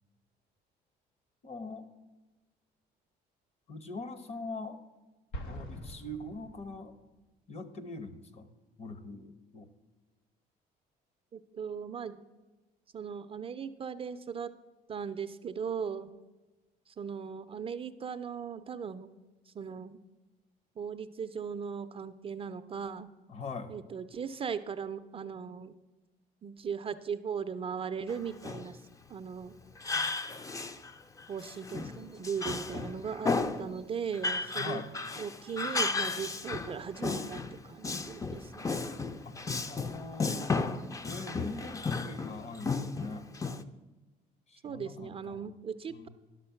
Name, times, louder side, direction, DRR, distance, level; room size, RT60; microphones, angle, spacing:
voice 1, 1.4-1.9 3.7-4.8 5.4-6.9 7.5-8.5 8.8-9.7 23.3-23.7 34.6-34.9 39.2-39.4 39.7-40.8 41.0-43.3 44.5-45.5 45.9-46.1, left 3 dB, 40° left, 12 dB, 0.9 m, -42 dB
Explosion, 5.3-7.2, right 1 dB, 90° left, 1.1 m, -43 dB
voice 2, 11.3-12.2 12.9-14.5 14.9-16.1 16.9-19.1 19.5-20.0 20.8-23.1 23.7-25.7 26.4-28.8 29.1-29.5 31.3-33.3 33.6-34.8 35.2-38.6 44.6-46.1, right 6 dB, 35° right, 10 dB, 0.4 m, -38 dB
Male speech man speaking, 28.1-28.7 29.8-30.9 31.2-33.7 34.1-37.6 37.8-43.6, left 3 dB, 20° left, 0.5 m, -34 dB
11.5 x 6.1 x 5.7 m, 1.2 s
cardioid pair, 110°, 17 cm